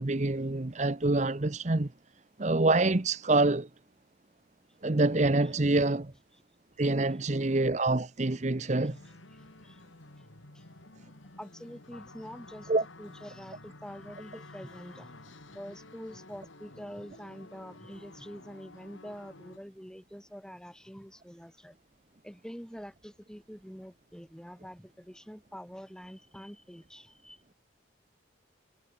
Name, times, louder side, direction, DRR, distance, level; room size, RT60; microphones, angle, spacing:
voice 1, 0.0-1.9 2.4-3.7 4.8-6.1 6.8-9.0 12.7-12.8, right 2 dB, 35° right, 0.8 m, -26 dB
sound 1, 8.9-19.6, left 2 dB, 80° left, 2.9 m, -51 dB
voice 2, 9.3-9.8 10.2-10.3 10.5-10.7 11.4-12.7 13.0-15.1 15.5-21.7 22.2-27.4, equal, 5° left, 7.4 m, -46 dB
head